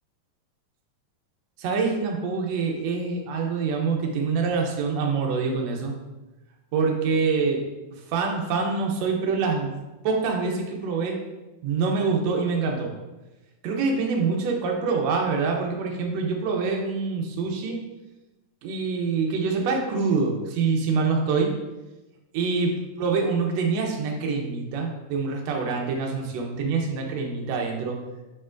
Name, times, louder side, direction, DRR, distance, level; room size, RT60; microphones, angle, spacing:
voice 1, 1.6-5.9 6.7-7.6 8.1-9.8 10.0-11.2 11.6-12.9 13.6-17.8 18.6-21.5 22.3-22.7 23.0-28.0, right 4 dB, 70° right, 1 dB, 1.6 m, -25 dB
6.9 x 5.8 x 2.5 m, 1.1 s
omnidirectional pair, 4.1 m